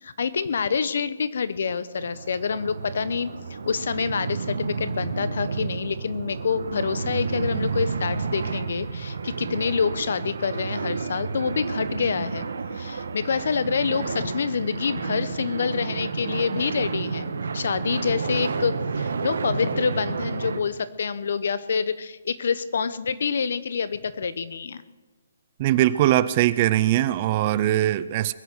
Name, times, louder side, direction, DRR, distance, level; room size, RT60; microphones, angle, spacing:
voice 1, 0.0-12.5 12.7-17.3 17.5-24.8, left 6 dB, 60° left, 16 dB, 0.9 m, -27 dB
sound 1, 2.0-20.6, right 4 dB, 80° right, 1.3 m, -31 dB
voice 2, 25.6-28.3, right 13 dB, 25° right, 16 dB, 0.4 m, -21 dB
21.5 x 8.0 x 6.2 m, 1.2 s
hypercardioid pair, 170°, 0 cm